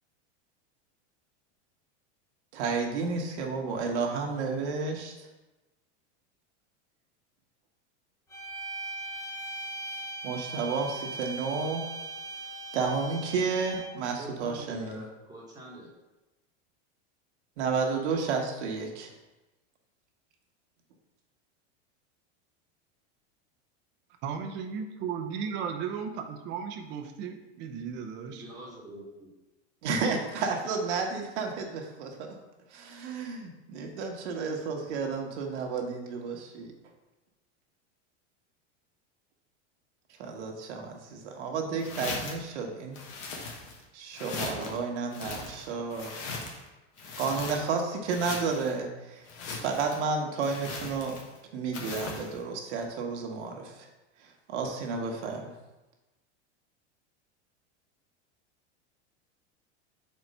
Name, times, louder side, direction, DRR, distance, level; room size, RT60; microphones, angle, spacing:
voice 1, 2.5-5.3 10.2-11.8 12.7-15.0 17.6-19.1 29.8-32.3 32.7-36.7 40.2-43.0 43.9-46.2 47.2-49.2 49.6-51.2 51.5-53.9 54.2-55.5, right 4 dB, 75° right, 2 dB, 1.4 m, -31 dB
sound 1, 8.3-14.1, right 2 dB, 10° left, 0.8 m, -39 dB
voice 2, 14.2-15.9 28.3-29.3, right 1 dB, 10° right, -5 dB, 1.2 m, -45 dB
voice 3, 24.2-28.4, right 7 dB, 35° right, 4 dB, 0.6 m, -35 dB
sound 2, 41.8-42.5 42.9-43.8 44.1-44.8 45.1-46.7 47.0-47.8 48.1-48.7 49.3-50.0 50.4-51.4 51.7-52.3, left 3 dB, 55° left, 1.3 m, -39 dB
4.7 x 4.4 x 5.4 m, 1.1 s
supercardioid pair, 160°, 35 cm